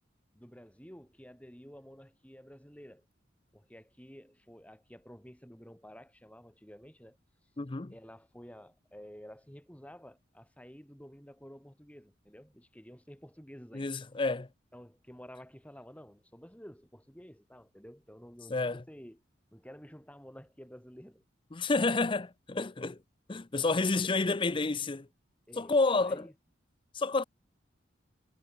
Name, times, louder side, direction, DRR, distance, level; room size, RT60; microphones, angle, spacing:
voice 1, 0.3-3.1 3.5-7.2 7.9-13.9 14.7-19.2 19.5-21.2 23.6-24.3 25.5-26.3, equal, 5° left, 4.5 m, -51 dB
voice 2, 7.6-7.9 13.7-14.5 18.5-18.8 21.5-23.0 23.3-25.1 25.6-26.2 26.9-27.2, left 3 dB, 25° left, 0.6 m, -29 dB
head